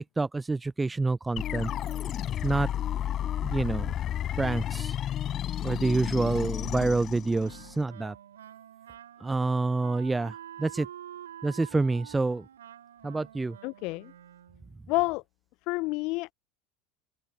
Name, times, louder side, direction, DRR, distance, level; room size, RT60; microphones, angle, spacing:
voice 1, 0.0-1.7 2.4-2.7 3.4-3.9 4.4-4.9 5.6-8.1 9.2-10.9 11.4-12.4 13.0-13.6, right 3 dB, 15° right, 0.5 m, -27 dB
sound 1, 1.4-7.8, left 10 dB, 40° left, 6.0 m, -32 dB
Wind instrument woodwind instrument, 7.4-14.8, right 10 dB, 75° right, 3.6 m, -47 dB
voice 2, 13.6-14.1 14.9-15.2 15.7-16.3, left 24 dB, 55° left, 0.5 m, -29 dB
open air
figure-of-eight pair, 75°, 0 cm